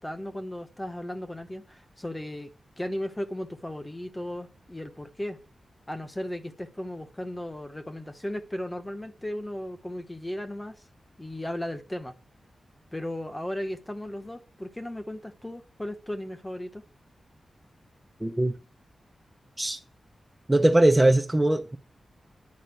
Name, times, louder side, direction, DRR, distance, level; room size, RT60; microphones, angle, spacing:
voice 1, 0.0-5.4 5.9-10.8 11.2-12.1 12.9-16.9, left 1 dB, 10° left, 1.0 m, -36 dB
voice 2, 18.2-18.5 19.6-19.8 20.5-21.8, right 1 dB, 10° right, 0.7 m, -21 dB
10.5 x 5.5 x 8.1 m
wide cardioid pair, 150°, 0 cm